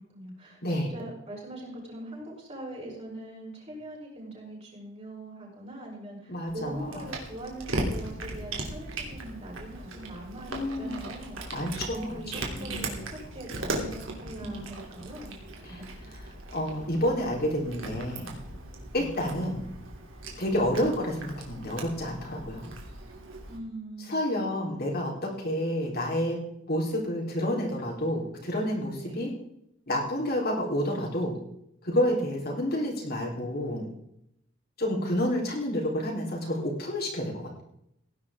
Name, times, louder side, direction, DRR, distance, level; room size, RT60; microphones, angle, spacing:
voice 1, 0.0-11.5 11.9-16.1 18.9-19.4 23.5-24.2 29.0-29.4 32.1-32.4, right 1 dB, 30° right, -4 dB, 6.8 m, -42 dB
voice 2, 6.3-7.1 10.5-11.0 11.5-13.0 14.4-14.6 15.6-15.8 16.5-18.3 18.9-19.6 20.4-22.6 24.1-26.4 26.7-29.3 29.9-31.3 31.8-33.8 34.8-37.6, equal, 50° left, -3 dB, 3.8 m, -29 dB
Cat, 6.5-23.6, right 2 dB, 70° right, 3.0 m, -38 dB
18.0 x 10.5 x 3.7 m, 0.76 s
head